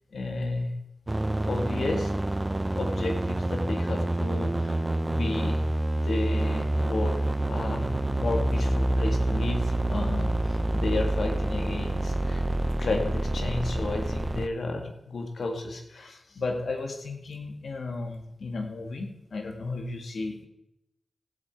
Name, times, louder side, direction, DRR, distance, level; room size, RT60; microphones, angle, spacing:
voice 1, 0.1-0.8 1.5-2.1 2.7-5.6 6.0-7.9 8.2-12.4 12.8-20.5, left 3 dB, 75° left, 4 dB, 1.9 m, -33 dB
sound 1, 1.1-14.5, right 1 dB, 25° right, 0.7 m, -27 dB
16.0 x 8.0 x 4.7 m, 0.86 s
cardioid pair, 45°, 0 cm